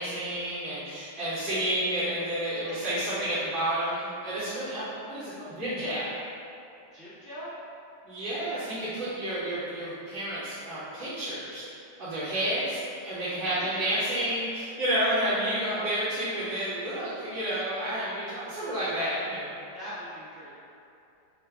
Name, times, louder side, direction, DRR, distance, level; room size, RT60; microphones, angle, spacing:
voice 1, 0.0-6.1 8.0-11.7 12.0-19.5, right 1 dB, 70° right, -17 dB, 2.2 m, -30 dB
voice 2, 6.9-7.5 13.2-13.3 19.7-20.5, equal, 50° right, -11 dB, 0.6 m, -41 dB
4.5 x 2.2 x 3.5 m, 2.7 s
omnidirectional pair, 2.0 m